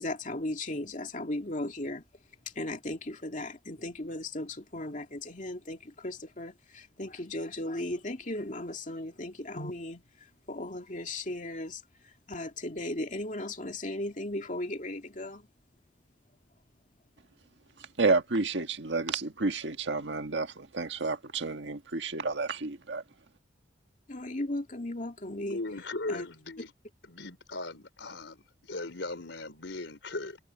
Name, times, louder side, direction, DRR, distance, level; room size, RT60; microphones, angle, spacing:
voice 1, 0.0-2.0 2.6-10.0 10.5-15.5 24.1-25.6 26.1-26.3, left 1 dB, 45° left, 2.5 m, -36 dB
voice 2, 17.8-23.0, right 3 dB, 80° right, 1.6 m, -30 dB
voice 3, 25.4-26.7 27.0-30.4, left 2 dB, 80° left, 3.9 m, -38 dB
head